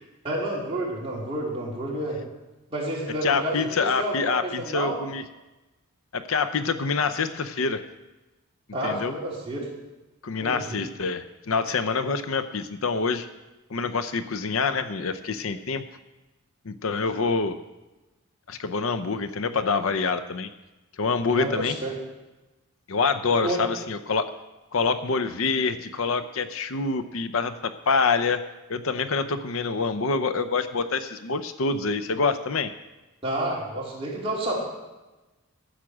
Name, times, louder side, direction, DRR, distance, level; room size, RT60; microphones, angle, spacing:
voice 1, 0.2-2.2 2.7-5.1 8.7-9.6 10.4-10.8 21.3-21.9 23.4-23.6 33.2-34.6, right 1 dB, 25° right, -5 dB, 3.2 m, -30 dB
voice 2, 3.2-5.2 6.1-7.8 8.8-9.1 10.2-13.3 13.7-15.8 16.7-17.6 18.5-20.5 21.0-21.8 22.9-24.3 24.7-28.4 28.7-32.7, left 4 dB, 65° left, 11 dB, 0.6 m, -26 dB
13.0 x 7.5 x 6.1 m, 1.1 s
head